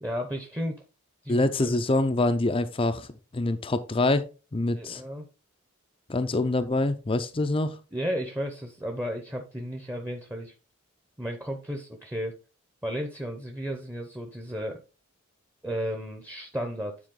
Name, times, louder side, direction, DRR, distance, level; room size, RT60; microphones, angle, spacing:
voice 1, 0.0-0.8 1.2-1.7 4.7-5.3 7.9-10.5 11.2-12.4 12.8-14.8 15.6-17.0, equal, 10° right, 3 dB, 0.8 m, -33 dB
voice 2, 1.3-3.1 3.3-4.2 4.5-5.0 6.1-7.8, left 2 dB, 25° left, 9 dB, 0.5 m, -25 dB
9.3 x 4.5 x 3.8 m, 0.32 s
head